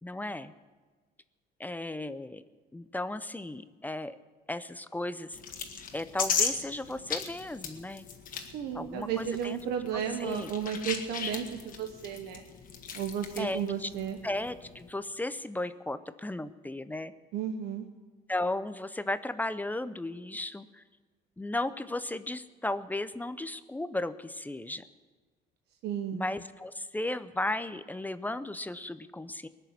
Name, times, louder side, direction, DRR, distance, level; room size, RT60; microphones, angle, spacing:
voice 1, 0.0-0.5 1.6-2.4 2.7-4.2 4.5-5.4 5.9-8.1 8.7-9.6 9.9-10.5 13.4-13.9 14.2-17.1 18.3-20.8 21.4-24.8 26.1-29.5, left 2 dB, 10° left, 13 dB, 0.6 m, -35 dB
sound 1, 5.3-14.9, left 6 dB, 55° left, 1.8 m, -37 dB
voice 2, 8.5-12.4 12.9-14.2 17.3-17.8 25.8-26.2, right 8 dB, 80° right, 4 dB, 1.1 m, -33 dB
19.5 x 6.8 x 9.6 m, 1.4 s
cardioid pair, 110°, 17 cm